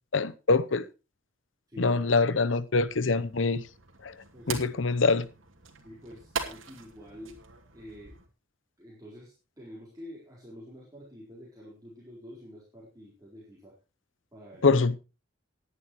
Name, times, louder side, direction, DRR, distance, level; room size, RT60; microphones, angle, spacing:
voice 1, 0.1-0.8 1.8-3.6 4.0-4.1 4.5-5.2 14.6-15.0, left 3 dB, 70° left, 0.8 m, -24 dB
voice 2, 1.7-2.3 4.3-4.7 5.8-7.4 7.7-8.2 8.8-13.8 14.3-14.8, equal, 20° right, 4.3 m, -48 dB
sound 1, 2.9-8.3, right 5 dB, 85° right, 2.8 m, -41 dB
19.5 x 10.0 x 3.1 m
head